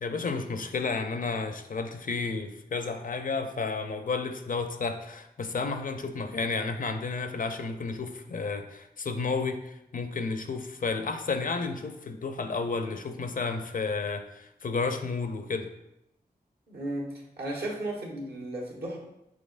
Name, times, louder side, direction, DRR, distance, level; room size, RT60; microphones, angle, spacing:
voice 1, 0.0-15.7, left 4 dB, 55° left, 7 dB, 0.5 m, -32 dB
voice 2, 16.7-19.0, right 1 dB, 75° right, -3 dB, 1.2 m, -35 dB
6.4 x 2.9 x 2.5 m, 0.85 s
cardioid pair, 50°, 17 cm